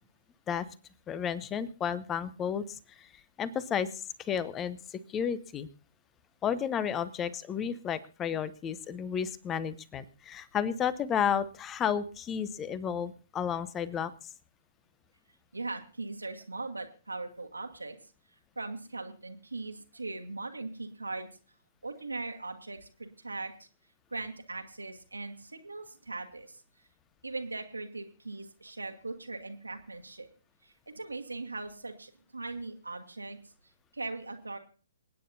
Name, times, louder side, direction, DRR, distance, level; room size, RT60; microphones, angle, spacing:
voice 1, 1.1-3.1 3.4-5.7 6.4-14.3, left 8 dB, 20° left, 17 dB, 0.8 m, -32 dB
voice 2, 15.5-18.1 18.5-21.3 21.8-23.7 24.1-26.6 27.2-30.3 30.6-33.4 33.6-34.6, right 3 dB, 80° right, 3 dB, 1.5 m, -40 dB
27.5 x 9.3 x 2.7 m, 0.36 s
figure-of-eight pair, 120°, 0 cm